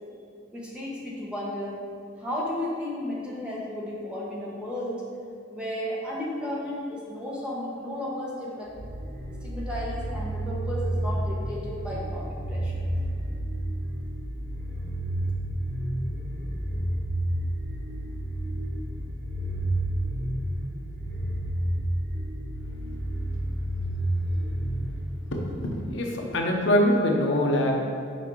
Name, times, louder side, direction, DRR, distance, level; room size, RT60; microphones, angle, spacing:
voice 1, 0.5-1.8 2.2-5.0 5.5-8.7 9.4-12.8, left 1 dB, 5° right, -6 dB, 1.1 m, -33 dB
sound 1, 8.7-25.6, right 1 dB, 40° right, 1.0 m, -30 dB
voice 2, 25.6-27.7, left 1 dB, 70° left, 0 dB, 0.9 m, -23 dB
6.2 x 4.7 x 4.7 m, 2.5 s
head